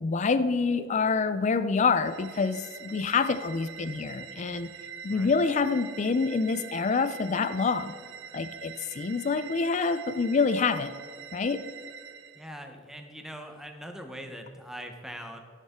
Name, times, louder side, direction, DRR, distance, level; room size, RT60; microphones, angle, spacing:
voice 1, 0.0-4.7 5.0-7.9 8.3-10.9 11.3-11.7, left 4 dB, 35° left, 13 dB, 0.4 m, -26 dB
sound 1, 2.0-12.5, right 8 dB, 65° right, 0.4 m, -45 dB
voice 2, 12.3-15.4, equal, ahead, 4 dB, 0.8 m, -42 dB
13.0 x 6.5 x 3.6 m, 2.1 s
head